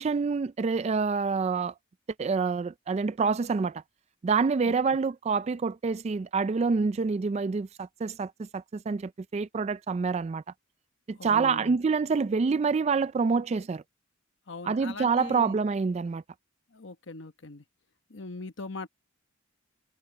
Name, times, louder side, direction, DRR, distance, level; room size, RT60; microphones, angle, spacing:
voice 1, 0.0-1.7 2.2-3.8 4.2-10.4 11.1-13.8 14.6-16.2, right 5 dB, 30° right, 0.3 m, -27 dB
voice 2, 11.2-11.8 14.5-15.6 16.7-17.6 18.1-18.9, left 3 dB, 60° left, 1.1 m, -41 dB
head